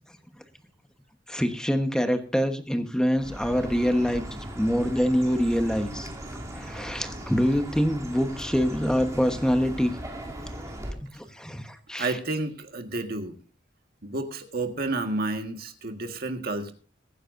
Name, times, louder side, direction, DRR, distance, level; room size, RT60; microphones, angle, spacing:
voice 1, 1.3-4.2 4.6-6.1 6.5-9.9 11.0-12.1, equal, 5° left, 7 dB, 1.2 m, -25 dB
Chirp tweet, 3.1-10.9, right 1 dB, 15° right, 2.5 m, -38 dB
voice 2, 3.7-4.2 12.0-13.4 14.0-16.7, right 2 dB, 55° right, 6 dB, 1.7 m, -31 dB
22.5 x 9.9 x 2.6 m, 0.39 s
head